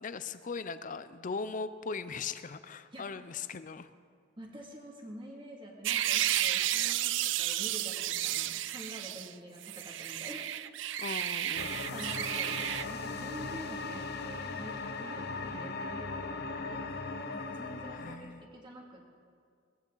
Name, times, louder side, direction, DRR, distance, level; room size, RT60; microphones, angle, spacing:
voice 1, 0.0-3.9 11.0-11.8 17.9-18.4, left 4 dB, 45° left, 13 dB, 0.5 m, -39 dB
voice 2, 4.4-10.5 11.9-16.8 17.3-19.1, equal, 25° right, -1 dB, 2.4 m, -47 dB
sound 1, 5.8-9.3 9.6-12.8, right 12 dB, 70° right, 0.4 m, -32 dB
sound 2, 11.6-18.2, left 3 dB, 60° left, 1.0 m, -38 dB
20.0 x 14.5 x 3.9 m, 2.2 s
head